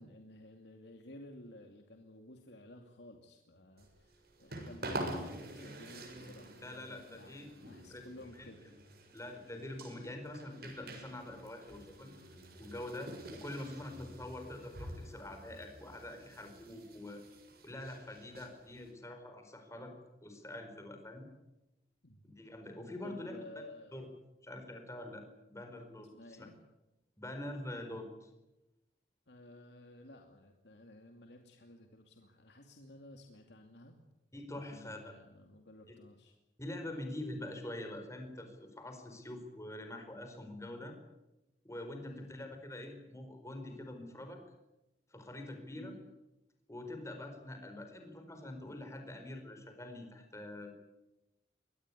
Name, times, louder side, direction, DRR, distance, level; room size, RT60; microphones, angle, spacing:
voice 1, 0.0-8.6 16.7-16.8 22.0-22.2 23.0-24.0 26.1-26.6 29.3-34.0 34.5-36.4 42.0-42.2 45.7-46.0, left 1 dB, 70° left, 4 dB, 2.6 m, -54 dB
sound 1, 3.8-18.9, right 1 dB, 60° right, 7.1 m, -47 dB
voice 2, 6.6-7.5 7.9-8.0 9.1-12.1 12.6-17.2 17.6-19.9 20.2-21.3 22.2-23.4 23.9-24.1 24.4-26.1 26.4-26.5 27.2-28.3 34.3-35.1 36.6-41.0 41.6-44.4 45.1-46.0 46.7-50.7, left 1 dB, 15° left, 5 dB, 4.6 m, -45 dB
23.5 x 19.5 x 9.8 m, 0.97 s
head